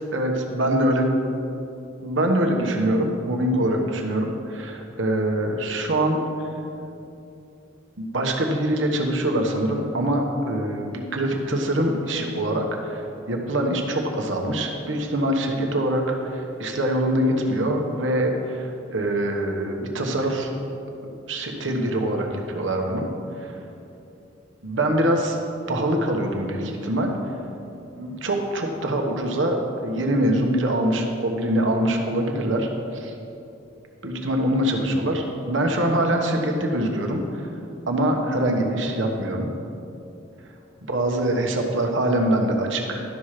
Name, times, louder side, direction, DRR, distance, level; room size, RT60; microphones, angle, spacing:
voice 1, 0.1-1.1 2.0-6.2 8.0-20.5 21.3-23.0 23.4-23.6 24.6-25.4 25.7-27.3 28.0-33.1 34.0-37.5 37.9-39.5 40.9-43.0, right 1 dB, 85° right, 2 dB, 1.2 m, -24 dB
12.0 x 5.9 x 4.9 m, 2.8 s
head